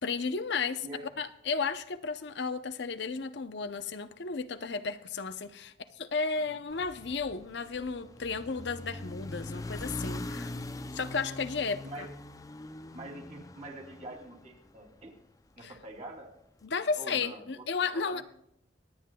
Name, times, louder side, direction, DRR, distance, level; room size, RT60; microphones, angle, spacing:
voice 1, 0.0-0.8 1.2-10.5 10.9-12.1 15.6-15.7 16.7-18.2, left 4 dB, 65° left, 0.6 m, -33 dB
sound 1, 6.7-15.1, left 2 dB, 20° left, 0.4 m, -42 dB
voice 2, 10.3-10.7 11.8-12.1 12.9-15.1 15.6-16.3 16.9-18.2, right 1 dB, 35° right, 2.9 m, -45 dB
24.0 x 9.3 x 2.3 m
head